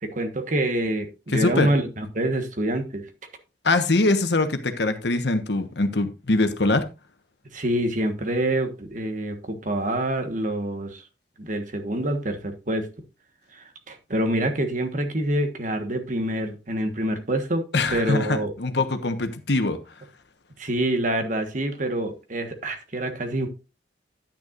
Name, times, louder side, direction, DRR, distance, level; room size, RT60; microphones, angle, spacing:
voice 1, 0.0-3.1 7.5-11.0 11.4-12.9 13.5-17.6 17.9-18.5 20.6-23.5, right 1 dB, 45° right, 1.4 m, -26 dB
voice 2, 1.3-1.7 3.6-6.8 17.7-19.8, left 2 dB, 75° left, 1.2 m, -23 dB
10.5 x 9.4 x 2.5 m
head